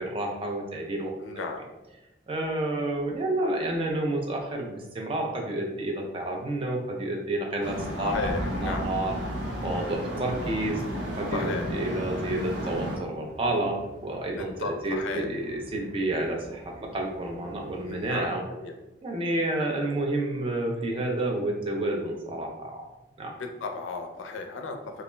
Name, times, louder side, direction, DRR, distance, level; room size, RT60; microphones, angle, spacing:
voice 1, 0.0-1.5 2.3-9.1 9.6-10.8 11.2-18.4 19.0-22.8 23.2-23.4, right 1 dB, 30° right, 0 dB, 0.3 m, -30 dB
voice 2, 1.2-1.6 8.0-8.8 11.3-11.6 14.4-15.3 17.8-18.7 23.4-25.0, left 4 dB, 80° left, 4 dB, 0.4 m, -35 dB
sound 1, 7.6-13.0, equal, 65° right, 0.6 m, -32 dB
sound 2, 9.3-18.3, equal, 30° left, 0.7 m, -49 dB
sound 3, 9.4-13.0, right 2 dB, 10° right, 0.7 m, -49 dB
2.3 x 2.0 x 3.1 m, 1.0 s
head